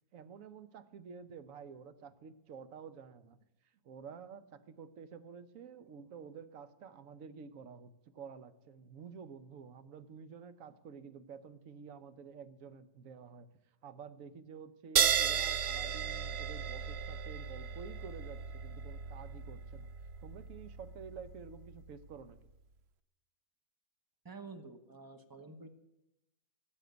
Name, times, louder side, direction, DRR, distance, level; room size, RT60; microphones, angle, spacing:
voice 1, 0.1-3.4 3.8-13.5 13.8-19.9 20.2-22.4, right 6 dB, 55° right, 12 dB, 1.1 m, -50 dB
sound 1, 15.0-21.9, right 8 dB, 75° right, 0.5 m, -35 dB
voice 2, 24.2-25.7, right 3 dB, 15° right, 8 dB, 0.8 m, -49 dB
17.0 x 7.8 x 8.0 m, 0.88 s
omnidirectional pair, 1.9 m